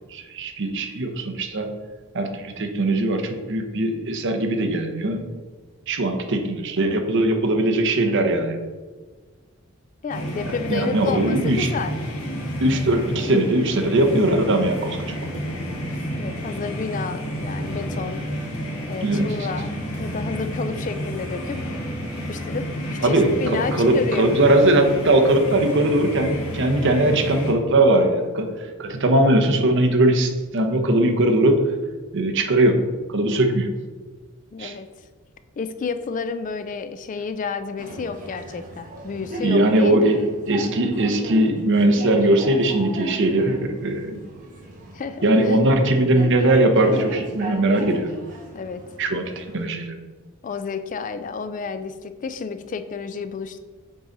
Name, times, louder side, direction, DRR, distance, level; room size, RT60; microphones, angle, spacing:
voice 1, 0.1-1.7 2.1-5.2 5.9-8.6 10.7-11.7 12.6-15.5 19.0-19.5 23.0-31.6 32.1-32.8 33.1-33.7 34.6-34.8 39.4-44.3 45.2-48.1 49.0-50.0, right 1 dB, 60° right, 5 dB, 0.8 m, -20 dB
voice 2, 10.0-11.9 16.1-18.3 18.9-21.6 22.3-24.3 34.5-34.9 35.6-40.1 44.9-45.6 48.5-48.8 50.4-53.6, left 5 dB, 35° left, 11 dB, 0.3 m, -30 dB
sound 1, 10.1-27.5, equal, 75° left, 1.2 m, -30 dB
sound 2, 37.8-49.6, right 1 dB, 35° right, 1.4 m, -36 dB
7.7 x 4.0 x 3.9 m, 1.4 s
head